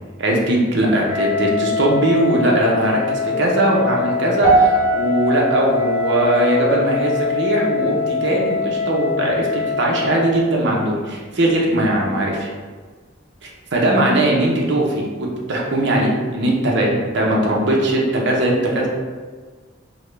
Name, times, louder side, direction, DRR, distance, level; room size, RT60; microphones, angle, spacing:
voice 1, 0.2-12.5 13.4-18.9, right 1 dB, 65° right, -2 dB, 0.7 m, -19 dB
Wind instrument woodwind instrument, 1.0-10.4, left 5 dB, 35° left, 0.5 m, -23 dB
sound 1, 4.4-8.8 9.1-9.5 10.1-10.2, right 4 dB, 65° left, 0.9 m, -23 dB
3.6 x 2.1 x 3.1 m, 1.5 s
head